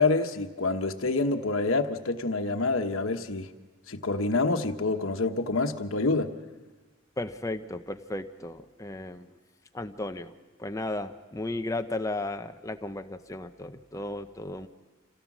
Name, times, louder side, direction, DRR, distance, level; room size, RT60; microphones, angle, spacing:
voice 1, 0.0-3.5 3.9-6.3, left 3 dB, 85° left, 6 dB, 1.1 m, -27 dB
voice 2, 7.2-9.3 9.7-10.3 10.6-14.7, left 2 dB, 15° left, 7 dB, 0.8 m, -35 dB
27.0 x 17.0 x 6.1 m, 1.2 s
head